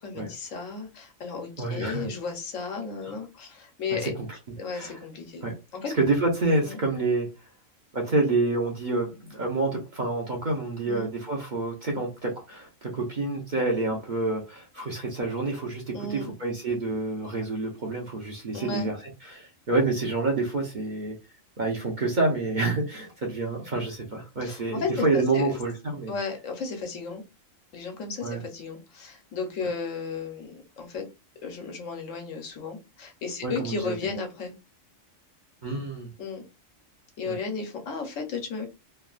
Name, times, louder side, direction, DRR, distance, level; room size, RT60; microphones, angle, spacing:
voice 1, 0.0-4.1 4.6-5.5 5.7-5.9 6.6-6.8 10.9-11.1 15.9-16.3 18.5-18.9 24.4-25.6 26.1-27.2 27.7-31.1 31.4-34.5 36.2-36.4 37.2-38.7, left 4 dB, 75° left, 1.2 m, -34 dB
voice 2, 1.6-2.1 3.9-4.1 4.7-4.9 5.4-5.5 5.9-7.3 7.9-19.0 19.2-21.2 21.6-26.1 28.2-28.4 33.4-33.9 35.6-36.1 37.3-37.4, right 3 dB, 45° right, 0.7 m, -28 dB
3.3 x 2.2 x 2.4 m
omnidirectional pair, 1.3 m